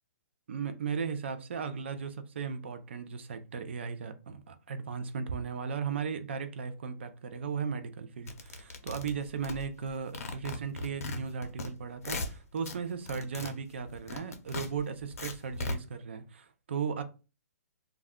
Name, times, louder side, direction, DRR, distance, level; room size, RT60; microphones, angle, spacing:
voice 1, 0.5-17.0, right 6 dB, 45° right, 0.4 m, -36 dB
sound 1, 8.3-9.9 10.1-11.7 12.0-12.8 13.1-15.7, left 2 dB, 65° left, 0.6 m, -38 dB
2.3 x 2.1 x 3.5 m
hypercardioid pair, 180°, 9 cm